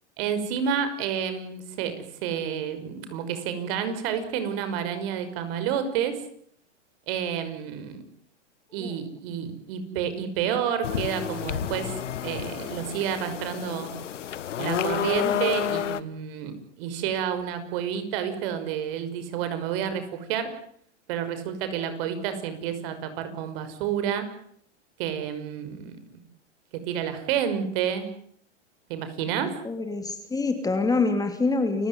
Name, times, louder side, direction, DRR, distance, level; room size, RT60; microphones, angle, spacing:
voice 1, 0.2-6.2 7.1-8.0 8.7-11.9 12.2-13.9 14.6-20.5 21.1-24.3 25.0-26.2 26.7-28.1 28.9-29.5, right 8 dB, 50° right, 10 dB, 6.0 m, -29 dB
sound 1, 10.8-16.0, left 10 dB, 85° left, 1.6 m, -30 dB
voice 2, 29.6-31.9, left 3 dB, 10° left, 8 dB, 2.8 m, -26 dB
29.5 x 16.0 x 9.6 m, 0.66 s
hypercardioid pair, 130°, 36 cm